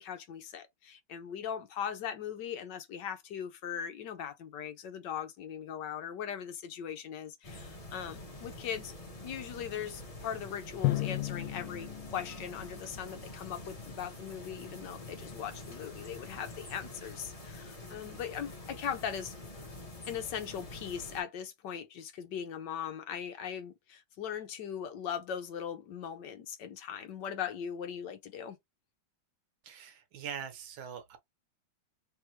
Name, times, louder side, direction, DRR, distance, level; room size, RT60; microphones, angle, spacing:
voice 1, 0.0-8.9 9.2-19.3 20.1-28.6, left 8 dB, 70° left, 1.3 m, -39 dB
sound 1, 7.4-21.2, left 1 dB, 20° left, 1.0 m, -46 dB
Drum, 10.8-13.6, left 17 dB, 85° left, 1.4 m, -35 dB
voice 2, 29.6-31.2, right 7 dB, 80° right, 1.7 m, -42 dB
3.7 x 3.4 x 2.9 m
omnidirectional pair, 2.2 m